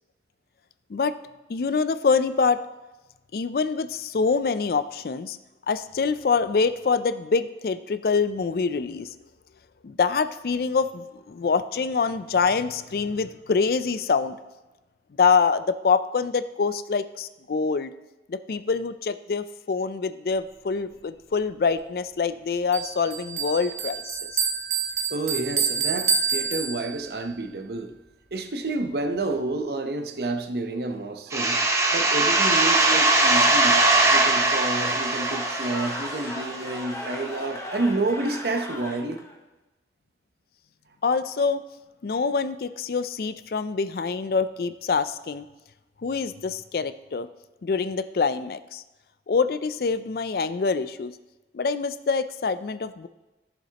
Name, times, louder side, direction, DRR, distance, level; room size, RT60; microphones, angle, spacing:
voice 1, 1.5-2.6 3.3-5.4 5.7-9.1 9.8-14.4 15.2-17.9 18.3-24.3 41.0-41.6 42.0-45.5 46.0-47.3 47.6-48.8 49.3-51.1 51.5-53.1, left 5 dB, 55° left, 12 dB, 0.4 m, -25 dB
Bell, 22.7-27.2, right 5 dB, 40° right, 1.1 m, -27 dB
voice 2, 25.1-27.9 28.3-33.8 34.1-39.2, right 2 dB, 65° right, 6 dB, 0.8 m, -29 dB
sound 1, 31.3-36.8, right 2 dB, 15° right, 0.7 m, -21 dB
Cheering / Crowd, 33.0-39.4, left 1 dB, 15° left, 0.8 m, -37 dB
14.0 x 7.2 x 2.9 m, 1.1 s
head